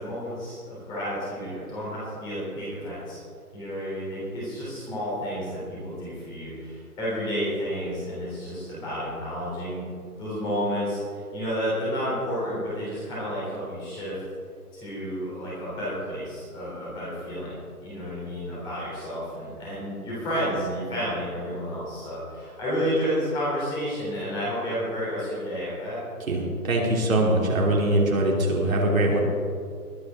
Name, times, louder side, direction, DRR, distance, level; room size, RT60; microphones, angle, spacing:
voice 1, 0.0-3.2 3.5-9.9 10.2-14.1 14.7-17.5 17.8-26.0, equal, 10° left, -8 dB, 3.6 m, -31 dB
voice 2, 26.2-29.2, right 1 dB, 60° right, -2 dB, 3.3 m, -22 dB
20.5 x 9.6 x 3.8 m, 2.3 s
hypercardioid pair, 160°, 47 cm